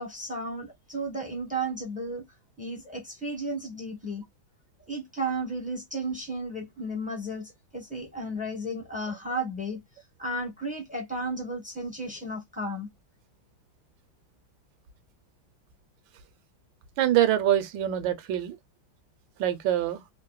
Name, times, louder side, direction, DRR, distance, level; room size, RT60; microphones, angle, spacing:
voice 1, 0.0-2.2 2.6-4.2 4.9-9.8 10.2-12.9, right 1 dB, 10° right, 0.6 m, -33 dB
voice 2, 17.0-18.6 19.4-20.0, right 12 dB, 75° right, 1.3 m, -24 dB
3.6 x 2.1 x 2.2 m
omnidirectional pair, 2.2 m